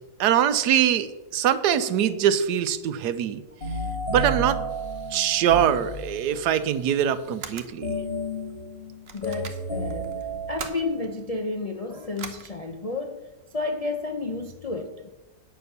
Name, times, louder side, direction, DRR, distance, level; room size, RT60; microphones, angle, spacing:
voice 1, 0.2-3.4 4.1-4.6 5.1-7.9, right 9 dB, 90° right, 13 dB, 1.3 m, -23 dB
sound 1, 3.6-6.6 7.8-11.1, right 1 dB, 30° left, 2.3 m, -32 dB
sound 2, 4.7-7.8 8.5-8.6 9.1-11.3 12.2-12.5, right 5 dB, 45° right, 1.1 m, -43 dB
voice 2, 9.1-10.1 10.5-13.2 13.5-15.1, left 3 dB, 60° left, 4 dB, 0.4 m, -31 dB
9.1 x 7.0 x 6.7 m, 1.1 s
omnidirectional pair, 1.7 m